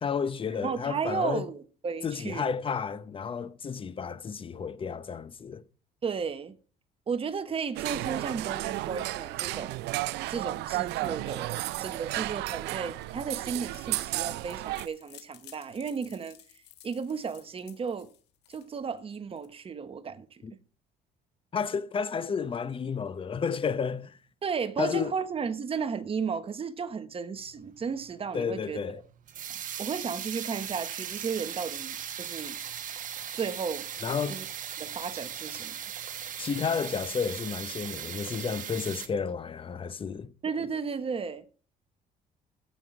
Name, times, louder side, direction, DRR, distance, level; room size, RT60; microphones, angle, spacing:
voice 1, 0.0-1.4 2.0-5.6 20.4-20.5 21.5-24.2 24.8-25.1 28.3-29.0 34.0-34.4 36.4-40.3, left 6 dB, 30° left, 0.8 m, -31 dB
voice 2, 0.6-2.5 6.0-6.5 7.1-9.8 10.3-16.4 16.8-18.1 18.5-20.4 24.4-28.8 29.8-32.6 33.3-33.9 34.3-34.4 34.8-35.7 40.4-41.4, right 6 dB, 35° right, 1.1 m, -34 dB
sound 1, 7.7-14.9, right 17 dB, 85° right, 0.5 m, -33 dB
sound 2, 13.0-19.5, left 12 dB, 85° left, 1.7 m, -54 dB
sound 3, 27.4-39.1, right 9 dB, 50° right, 1.2 m, -38 dB
14.5 x 5.8 x 4.8 m
cardioid pair, 110°, 17 cm